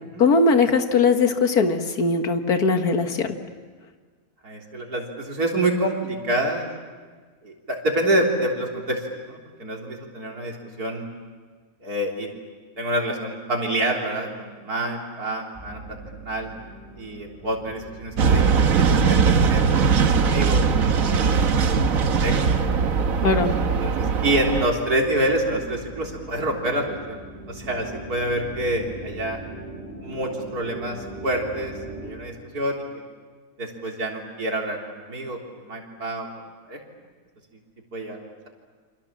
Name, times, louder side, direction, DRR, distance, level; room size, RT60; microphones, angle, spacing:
voice 1, 0.2-3.3 23.2-23.6, left 4 dB, 90° left, 6 dB, 2.1 m, -20 dB
voice 2, 4.4-6.7 7.4-11.1 11.8-12.3 12.8-16.5 17.0-22.5 23.7-27.2 27.5-29.4 30.0-31.7 32.0-33.0 33.6-36.3 36.7-36.8 37.9-38.5, right 1 dB, 85° right, 0 dB, 4.1 m, -27 dB
sound 1, 15.5-32.1, right 2 dB, 5° right, 7.8 m, -41 dB
sound 2, 18.2-24.7, right 5 dB, 65° right, 1.6 m, -20 dB
29.0 x 26.0 x 7.4 m, 1.5 s
omnidirectional pair, 1.6 m